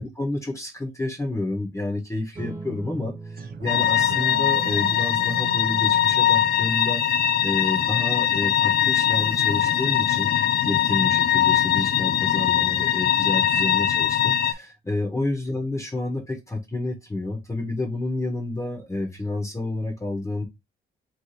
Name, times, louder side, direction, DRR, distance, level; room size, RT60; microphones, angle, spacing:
voice 1, 0.0-20.4, left 2 dB, 15° left, 1.3 m, -30 dB
sound 1, 2.3-13.1, right 3 dB, 20° right, 1.7 m, -44 dB
sound 2, 3.4-8.4 8.8-8.9, right 6 dB, 50° right, 0.7 m, -39 dB
sound 3, 3.7-14.5, left 10 dB, 55° left, 0.5 m, -21 dB
3.4 x 3.4 x 4.2 m
cardioid pair, 90°, 20 cm